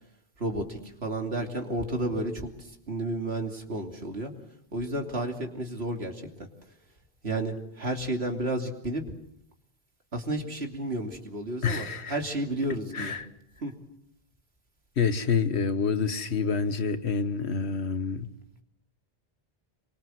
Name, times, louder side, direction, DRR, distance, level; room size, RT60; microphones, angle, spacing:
voice 1, 0.4-2.5 2.9-4.3 4.7-6.5 7.2-9.0 10.1-13.2 13.6-13.7, right 1 dB, 75° right, 3.2 m, -32 dB
voice 2, 11.6-12.2 12.9-13.3 15.0-18.3, left 5 dB, 90° left, 1.6 m, -27 dB
26.5 x 23.5 x 7.8 m
omnidirectional pair, 1.1 m